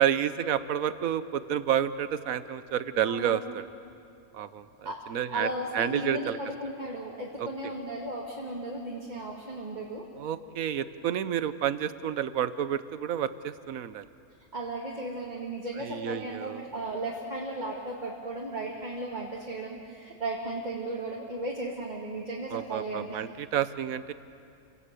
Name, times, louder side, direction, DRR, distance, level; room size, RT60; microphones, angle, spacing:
voice 1, 0.0-3.6 4.3-6.4 7.4-7.5 10.2-14.1 15.8-16.6 22.5-24.1, right 9 dB, 70° right, 13 dB, 1.2 m, -30 dB
voice 2, 3.0-3.4 4.8-5.0 5.3-10.1 14.5-23.2, right 1 dB, 30° right, -4 dB, 2.4 m, -35 dB
29.0 x 18.5 x 8.3 m, 2.5 s
omnidirectional pair, 1.5 m